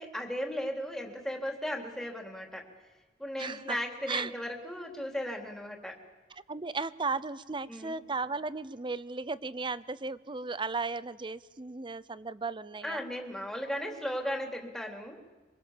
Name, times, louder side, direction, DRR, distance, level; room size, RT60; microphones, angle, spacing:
voice 1, 0.0-2.7 3.2-6.0 7.7-8.0 12.8-15.3, equal, ahead, 1 dB, 3.3 m, -36 dB
voice 2, 3.4-3.8 4.1-4.3 6.5-13.0, right 4 dB, 30° right, 17 dB, 0.7 m, -35 dB
27.0 x 25.0 x 7.3 m, 1.3 s
head